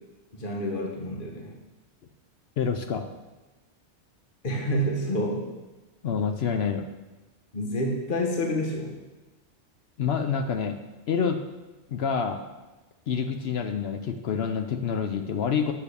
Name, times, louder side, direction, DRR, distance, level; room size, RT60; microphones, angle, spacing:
voice 1, 0.3-1.6 4.4-5.5 7.5-9.0, equal, 50° left, 0 dB, 1.4 m, -28 dB
voice 2, 2.6-3.1 6.0-6.8 10.0-10.8 11.1-11.4 11.9-12.4 13.1-15.7, left 6 dB, 65° left, 7 dB, 0.9 m, -27 dB
8.4 x 6.8 x 6.8 m, 1.1 s
omnidirectional pair, 1.2 m